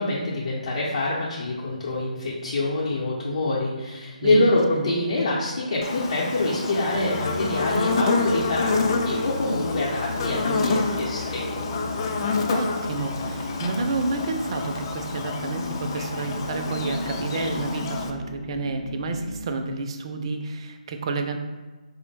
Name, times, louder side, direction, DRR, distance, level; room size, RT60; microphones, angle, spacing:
voice 1, 0.0-11.7, left 2 dB, 55° left, -6 dB, 0.7 m, -25 dB
voice 2, 4.2-4.9 12.5-21.4, right 3 dB, 40° right, 5 dB, 0.4 m, -30 dB
Buzz, 5.8-18.1, left 3 dB, 35° left, 0.3 m, -28 dB
sound 1, 6.9-19.4, left 1 dB, 90° left, 0.7 m, -35 dB
4.4 x 2.0 x 3.2 m, 1.3 s
figure-of-eight pair, 145°, 4 cm